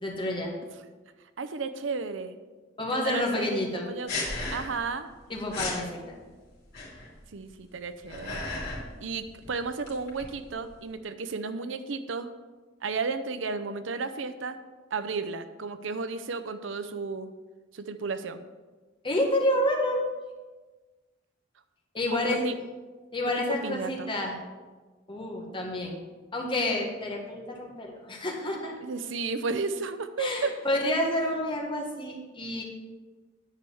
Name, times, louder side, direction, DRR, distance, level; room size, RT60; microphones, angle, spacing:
voice 1, 0.0-0.5 2.8-3.8 5.3-6.2 19.0-20.0 21.9-22.5 23.1-24.3 25.1-26.0 26.3-28.7 30.2-32.6, left 1 dB, 25° left, 0 dB, 1.7 m, -29 dB
voice 2, 1.4-2.4 2.8-4.1 4.5-5.1 7.3-8.4 9.0-12.3 12.8-14.6 14.9-17.3 17.7-18.5 22.1-22.2 22.4-22.5 23.4-24.1 28.8-30.6, right 4 dB, 70° right, 11 dB, 0.6 m, -33 dB
sound 1, 4.1-4.9 5.2-5.3 5.5-5.9 6.7-7.2 7.8-8.9 9.2-10.9, left 2 dB, 55° left, 3.1 m, -35 dB
10.0 x 4.7 x 7.0 m, 1.3 s
head